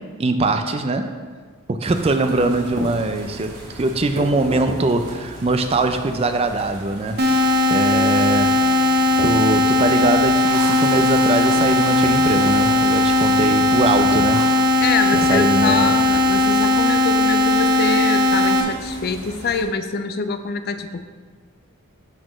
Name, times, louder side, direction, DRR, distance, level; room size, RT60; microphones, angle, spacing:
voice 1, 0.2-1.1 1.7-7.3 7.7-8.5 9.2-14.4 15.1-15.9, right 2 dB, 25° right, 7 dB, 0.3 m, -22 dB
sound 1, 1.8-19.6, right 1 dB, 85° right, 1.4 m, -35 dB
sound 2, 7.2-18.6, left 2 dB, 45° right, 0.7 m, -17 dB
Drill, 10.5-13.4 14.3-14.5, right 2 dB, 70° right, 1.3 m, -36 dB
voice 2, 14.8-21.0, left 5 dB, 45° left, 9 dB, 0.4 m, -25 dB
12.0 x 4.3 x 3.1 m, 1.5 s
head